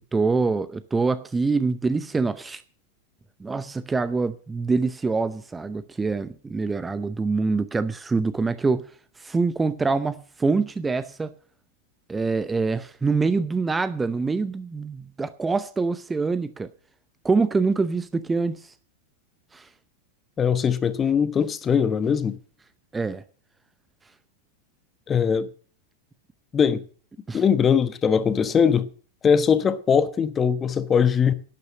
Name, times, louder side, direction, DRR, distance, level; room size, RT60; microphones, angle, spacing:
voice 1, 0.1-2.6 3.4-8.9 9.2-11.3 12.1-16.7 17.2-18.7 19.5-19.7 22.9-23.2 27.3-27.4, right 4 dB, 10° right, 0.7 m, -25 dB
voice 2, 20.4-22.4 25.1-25.5 26.5-26.8 27.3-28.8 29.2-31.3, left 7 dB, 20° left, 1.1 m, -21 dB
11.5 x 9.5 x 7.4 m
figure-of-eight pair, 90°, 0 cm